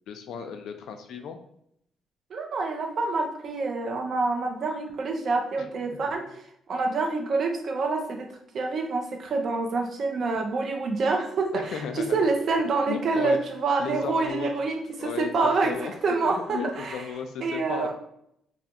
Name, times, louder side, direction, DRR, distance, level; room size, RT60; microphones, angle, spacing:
voice 1, 0.1-1.4 5.6-5.7 11.5-12.2 12.9-13.4 13.8-14.5 15.0-15.3 15.6-15.9 16.2-17.9, left 6 dB, 75° left, 6 dB, 0.3 m, -35 dB
voice 2, 2.3-6.2 6.7-8.3 8.5-15.8 16.0-17.0 17.4-17.9, right 3 dB, 60° right, 3 dB, 0.5 m, -27 dB
2.4 x 2.3 x 2.8 m, 0.74 s
cardioid pair, 90°, 0 cm